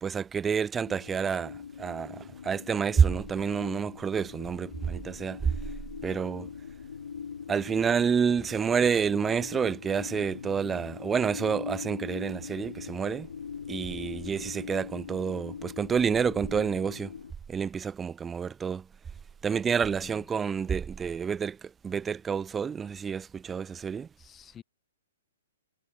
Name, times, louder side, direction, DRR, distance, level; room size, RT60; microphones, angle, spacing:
voice 1, 0.0-5.5 6.0-6.5 7.5-13.3 13.7-17.1 17.5-18.9 19.4-24.1, right 6 dB, 10° right, 0.5 m, -28 dB
sound 1, 0.8-17.3, left 6 dB, 90° left, 2.7 m, -41 dB
voice 2, 14.0-14.3 20.0-20.3 24.2-24.6, left 9 dB, 10° left, 7.9 m, -51 dB
hypercardioid pair, 175°, 0 cm